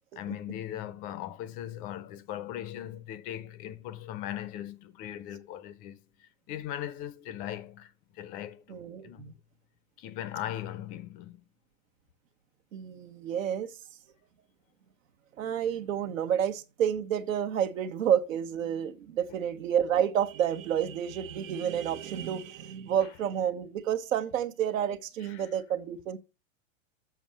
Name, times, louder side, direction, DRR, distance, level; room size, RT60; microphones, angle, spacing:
voice 1, 0.2-9.2 10.0-11.4 25.2-25.5, left 12 dB, 20° left, 0.5 m, -39 dB
voice 2, 8.7-9.3 12.7-13.7 15.4-26.2, right 9 dB, 80° right, 1.4 m, -30 dB
7.2 x 5.8 x 7.4 m
supercardioid pair, 160°, 40 cm